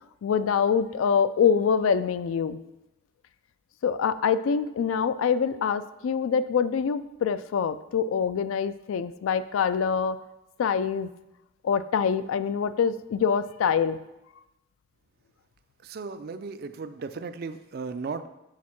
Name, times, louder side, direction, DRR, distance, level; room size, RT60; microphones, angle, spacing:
voice 1, 0.2-2.6 3.8-10.2 10.6-11.1 11.6-14.0, left 6 dB, 85° left, 14 dB, 0.3 m, -25 dB
voice 2, 15.8-18.3, right 4 dB, 50° right, 11 dB, 0.3 m, -36 dB
6.4 x 3.6 x 5.9 m, 0.95 s
head